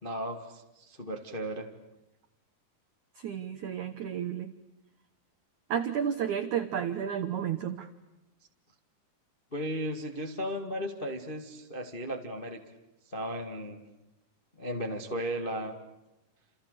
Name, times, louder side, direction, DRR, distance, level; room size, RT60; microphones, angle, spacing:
voice 1, 0.0-1.7 9.5-12.6 13.0-13.8 14.6-15.7, equal, 35° left, 3 dB, 0.8 m, -35 dB
voice 2, 3.2-4.5 5.7-7.9, right 9 dB, 80° right, 10 dB, 1.7 m, -32 dB
30.0 x 28.5 x 6.8 m, 0.93 s
omnidirectional pair, 5.2 m